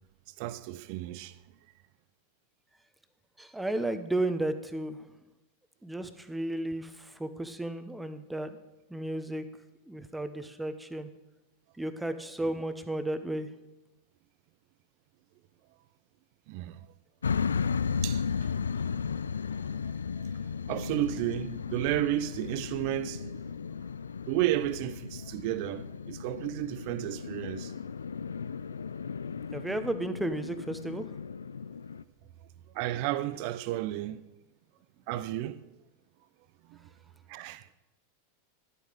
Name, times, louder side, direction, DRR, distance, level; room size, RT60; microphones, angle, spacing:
voice 1, 0.4-1.4 16.5-16.9 18.0-18.2 19.8-20.3 20.7-23.3 24.3-27.7 32.7-34.2 35.1-35.7 36.7-36.9 37.3-37.7, right 14 dB, 55° right, 0.6 m, -32 dB
voice 2, 3.4-5.1 5.8-8.6 8.9-9.4 9.9-11.1 11.8-13.5 29.5-31.2, right 1 dB, 5° right, 1.0 m, -33 dB
sound 1, 17.2-32.0, left 6 dB, 90° left, 0.3 m, -35 dB
11.0 x 8.3 x 5.2 m
hypercardioid pair, 100°, 0 cm